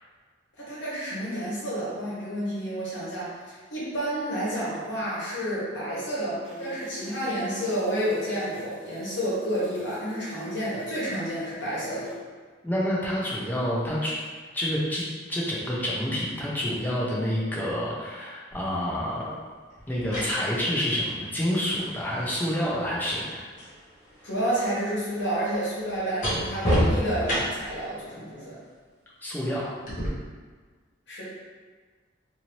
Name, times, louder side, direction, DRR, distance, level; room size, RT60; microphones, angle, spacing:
voice 1, 0.6-12.1 24.2-28.6 31.1-31.2, equal, 70° left, -8 dB, 1.2 m, -30 dB
sound 1, 6.4-12.2, right 1 dB, 70° right, 0.9 m, -44 dB
voice 2, 12.6-14.2 14.5-19.4 19.9-23.4 29.2-29.7, equal, 10° left, -6 dB, 0.5 m, -28 dB
sound 2, 18.5-18.7 19.8-23.8 24.1-27.8 29.9-30.1, equal, 40° left, 0.9 m, -31 dB
2.8 x 2.7 x 3.0 m, 1.5 s
head